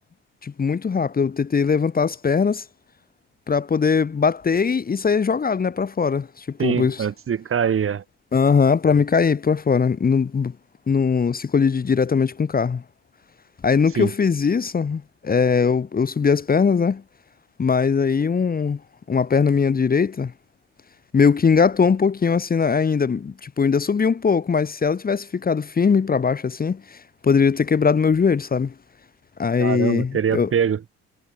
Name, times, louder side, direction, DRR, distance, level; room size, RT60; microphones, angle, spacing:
voice 1, 0.4-2.6 3.5-7.1 8.3-10.5 10.9-12.8 13.6-17.0 17.6-18.8 19.1-20.3 21.1-27.0 27.2-28.7 29.4-30.5, left 5 dB, 30° left, 1.3 m, -20 dB
voice 2, 6.6-8.0 14.0-14.1 29.6-30.9, right 8 dB, 45° right, 2.7 m, -23 dB
supercardioid pair, 65°, 29 cm